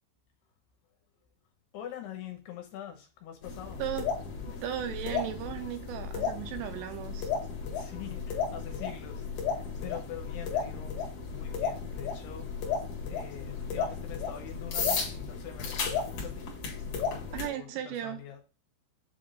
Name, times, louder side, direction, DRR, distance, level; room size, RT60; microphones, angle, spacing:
voice 1, 1.7-3.9 7.7-11.0 11.3-12.5 13.1-16.6 17.0-18.4, left 10 dB, 75° left, 2.7 m, -44 dB
sound 1, 3.4-17.5, left 5 dB, 55° left, 2.3 m, -34 dB
voice 2, 4.5-7.3 17.3-18.2, right 11 dB, 80° right, 2.7 m, -36 dB
7.8 x 3.6 x 3.9 m
omnidirectional pair, 5.4 m